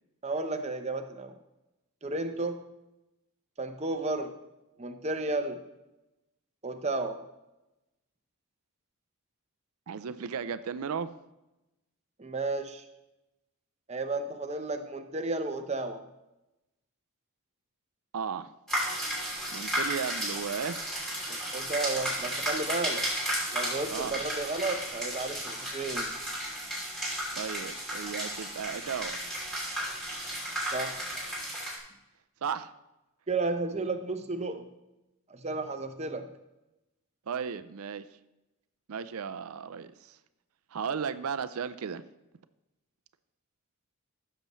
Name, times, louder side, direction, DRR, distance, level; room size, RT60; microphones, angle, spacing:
voice 1, 0.2-1.3 2.0-2.6 3.6-4.3 4.8-5.6 6.6-7.2 12.2-12.8 13.9-16.0 21.3-23.1 23.5-26.1 30.7-31.0 33.3-34.7 35.3-36.3, right 3 dB, 30° right, 6 dB, 0.7 m, -33 dB
voice 2, 9.9-11.1 18.1-18.5 19.5-20.9 23.9-24.1 27.4-29.2 32.4-32.7 37.3-38.0 38.9-40.2 40.7-42.0, right 6 dB, 75° right, 13 dB, 0.5 m, -35 dB
sound 1, 18.7-31.8, equal, ahead, 2.8 m, -34 dB
15.5 x 6.7 x 3.1 m, 0.96 s
head